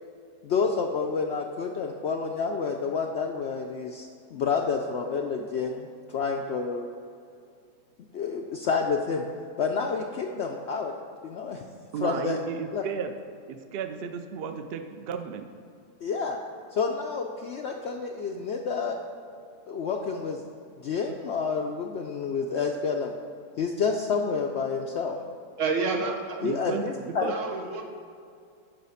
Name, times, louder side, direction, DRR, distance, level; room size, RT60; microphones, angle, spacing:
voice 1, 0.4-6.9 8.1-9.2 9.6-10.9 11.2-11.6 12.0-12.4 12.7-12.8 16.0-16.4 16.7-19.0 19.7-20.4 20.8-23.1 23.6-25.1 26.4-27.3, left 5 dB, 85° left, 2 dB, 0.6 m, -29 dB
voice 2, 11.9-13.1 13.5-15.5 26.4-27.3, right 7 dB, 85° right, 7 dB, 0.5 m, -33 dB
voice 3, 25.6-26.4 27.2-27.8, right 4 dB, 55° right, 2 dB, 1.2 m, -29 dB
10.5 x 4.1 x 5.5 m, 2.4 s
omnidirectional pair, 1.7 m